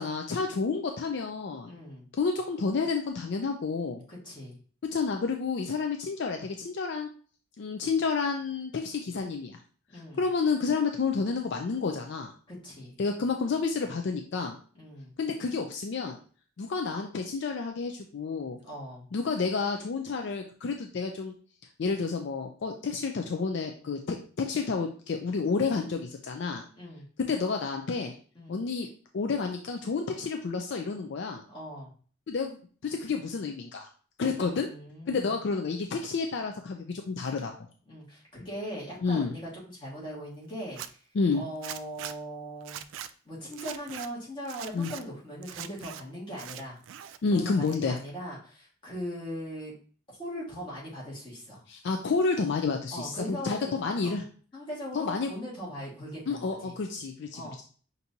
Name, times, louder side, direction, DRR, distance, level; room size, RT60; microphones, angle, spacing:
voice 1, 0.0-1.7 2.1-4.0 4.9-7.1 7.6-9.6 9.9-12.3 13.0-14.6 15.2-16.2 16.6-18.6 19.1-21.3 21.8-26.6 27.3-28.1 28.5-28.9 29.1-31.4 32.3-33.9 34.2-34.7 35.1-37.5 39.0-39.3 41.1-41.4 44.7-44.9 47.2-48.0 51.7-54.2 54.9-55.3 56.3-57.6, left 4 dB, 60° left, 4 dB, 0.4 m, -30 dB
voice 2, 1.7-2.1 4.1-4.6 9.9-10.3 12.5-13.0 14.7-15.1 18.6-19.1 26.7-27.1 28.3-28.6 31.5-31.9 34.3-35.4 37.9-41.0 41.3-42.8 43.2-46.8 47.3-49.7 50.2-51.6 52.9-54.2 54.5-56.7 57.3-57.6, equal, 25° left, -6 dB, 1.7 m, -40 dB
Zipper (clothing), 40.6-40.9 41.6-42.1 42.6-43.1 43.5-44.1 44.4-45.0 45.4-46.0 46.3-47.2 47.5-48.1, right 10 dB, 70° right, 0.3 m, -41 dB
5.8 x 2.6 x 2.7 m, 0.42 s
head